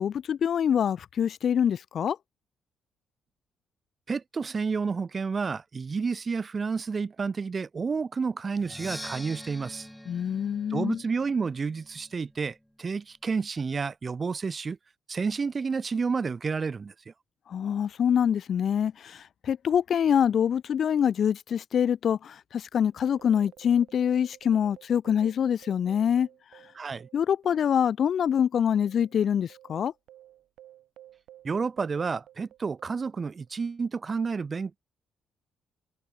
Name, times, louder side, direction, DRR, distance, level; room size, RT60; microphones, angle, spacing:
voice 1, 0.0-2.2 10.1-11.0 17.5-26.3 27.1-29.9, left 8 dB, 60° left, 0.4 m, -25 dB
voice 2, 4.1-9.9 10.7-14.8 15.1-17.1 26.7-27.1 31.4-34.8, right 5 dB, 35° right, 0.5 m, -30 dB
Percussion, 8.6-12.3, equal, 5° left, 1.2 m, -44 dB
sound 1, 22.9-27.7 28.0-28.1 28.7-33.5, right 13 dB, 80° right, 3.5 m, -54 dB
cardioid pair, 90°, 0 cm